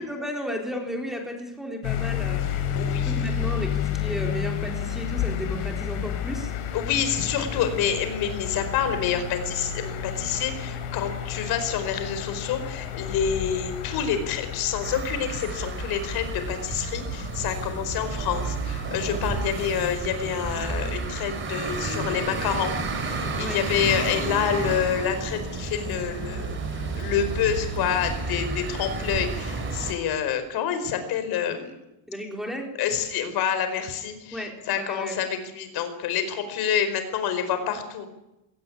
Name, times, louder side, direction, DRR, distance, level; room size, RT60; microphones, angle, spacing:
voice 1, 0.0-2.8 3.0-6.5 23.4-23.6 32.1-32.7 34.3-35.2, equal, ahead, 2 dB, 3.9 m, -33 dB
sound 1, 1.8-20.6, left 8 dB, 80° left, 5.3 m, -32 dB
voice 2, 2.5-3.2 6.7-31.7 32.8-38.1, left 8 dB, 55° left, 9 dB, 4.6 m, -28 dB
sound 2, 14.8-29.9, right 3 dB, 25° right, 4.4 m, -31 dB
21.5 x 18.0 x 10.0 m, 0.93 s
cardioid pair, 175°, 44 cm